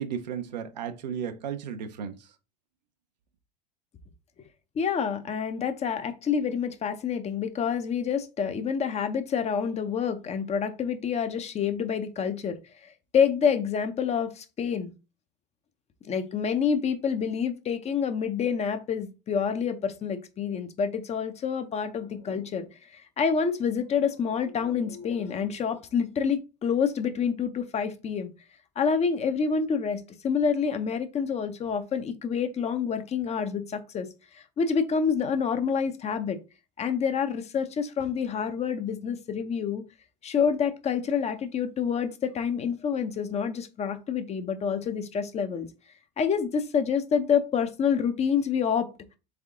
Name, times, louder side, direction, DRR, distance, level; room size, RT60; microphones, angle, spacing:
voice 1, 0.0-2.3, right 8 dB, 90° right, 0.7 m, -34 dB
voice 2, 4.8-14.9 16.0-22.7 22.9-28.3 28.8-34.1 34.3-36.4 36.8-39.8 40.2-45.7 46.2-48.9, left 6 dB, 30° left, 0.7 m, -27 dB
3.5 x 3.5 x 3.6 m
hypercardioid pair, 90°, 21 cm